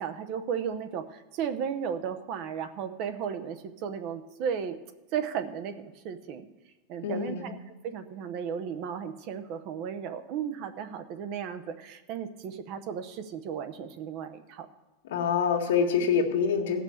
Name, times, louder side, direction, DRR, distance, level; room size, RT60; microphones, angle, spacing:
voice 1, 0.0-4.8 5.1-6.5 6.9-7.6 7.8-14.7, right 7 dB, 40° right, 9 dB, 0.8 m, -35 dB
voice 2, 7.0-7.5 15.1-16.8, left 6 dB, 85° left, 3 dB, 1.8 m, -26 dB
16.5 x 5.9 x 7.0 m, 1.1 s
supercardioid pair, 165°, 0 cm